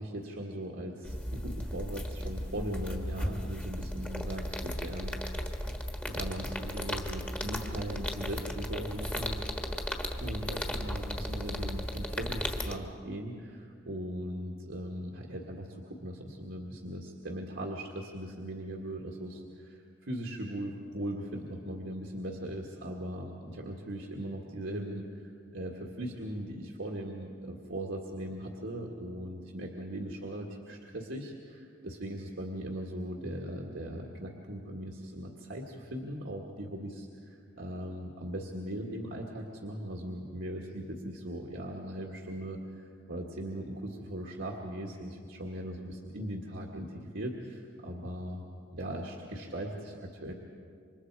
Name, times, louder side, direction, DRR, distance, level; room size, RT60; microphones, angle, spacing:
voice 1, 0.0-5.7 6.1-9.4 10.2-48.4 48.7-50.3, right 1 dB, 70° right, -1 dB, 1.9 m, -39 dB
sound 1, 1.1-12.8, equal, 5° left, 1.4 m, -36 dB
28.5 x 25.0 x 4.8 m, 2.3 s
head